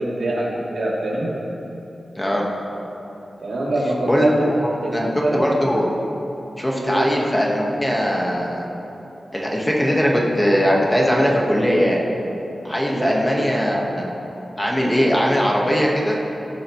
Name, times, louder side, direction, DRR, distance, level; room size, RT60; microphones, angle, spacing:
voice 1, 0.0-1.3 3.4-4.3 4.8-5.4 6.8-7.0 12.9-13.5, right 1 dB, 85° right, -6 dB, 2.9 m, -24 dB
voice 2, 2.1-2.5 4.1-4.6 4.8-5.9 6.6-8.6 9.3-12.0 12.6-14.1 14.6-16.2, equal, 10° left, -2 dB, 1.4 m, -20 dB
17.0 x 9.9 x 3.1 m, 3.0 s
wide cardioid pair, 110°, 0 cm